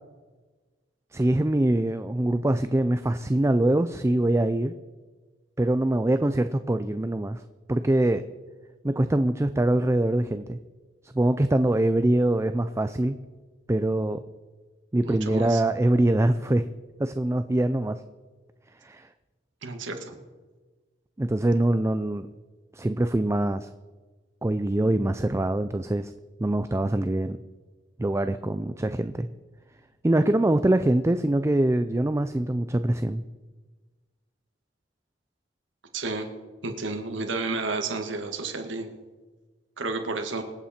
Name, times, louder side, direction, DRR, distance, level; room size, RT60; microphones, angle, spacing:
voice 1, 1.1-4.7 5.6-7.4 7.7-8.2 8.8-10.6 11.0-13.2 13.7-14.2 14.9-16.7 17.0-18.0 18.8-19.1 21.2-22.3 22.7-23.7 24.4-26.1 26.4-27.4 28.0-29.3 30.0-33.2, right 1 dB, 15° right, 10 dB, 0.4 m, -23 dB
voice 2, 15.0-15.6 19.6-20.1 35.9-36.3 36.6-38.9 39.8-40.4, right 3 dB, 80° right, 5 dB, 1.8 m, -31 dB
25.5 x 8.6 x 4.4 m, 1.3 s
head